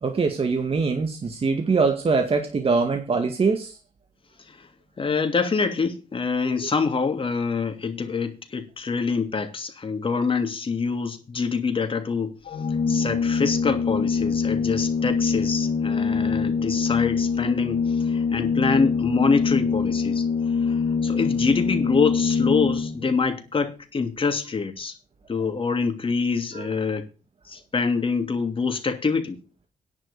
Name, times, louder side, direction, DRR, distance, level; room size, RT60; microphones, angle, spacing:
voice 1, 0.0-3.8 6.5-6.7 26.5-26.7, right 4 dB, 45° right, 2.1 m, -23 dB
voice 2, 5.0-12.4 12.9-20.2 20.6-24.9 25.3-27.0 27.5-29.4, left 4 dB, 40° left, 2.8 m, -25 dB
Organ, 12.4-23.2, left 5 dB, 70° left, 1.8 m, -24 dB
10.5 x 6.4 x 8.4 m
cardioid pair, 70°, 14 cm